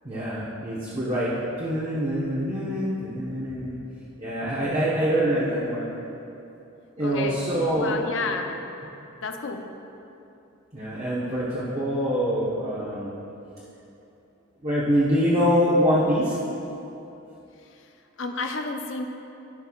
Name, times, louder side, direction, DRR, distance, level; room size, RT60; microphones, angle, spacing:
voice 1, 0.0-1.3 1.6-3.8 4.2-5.9 7.0-8.0 10.7-13.1 14.6-16.4, equal, 30° right, -8 dB, 1.0 m, -25 dB
voice 2, 4.6-5.4 7.0-7.4 7.8-8.6 9.2-9.6 17.7-17.9 18.2-19.1, left 3 dB, 60° left, 4 dB, 0.6 m, -31 dB
15.5 x 5.6 x 2.4 m, 2.9 s
head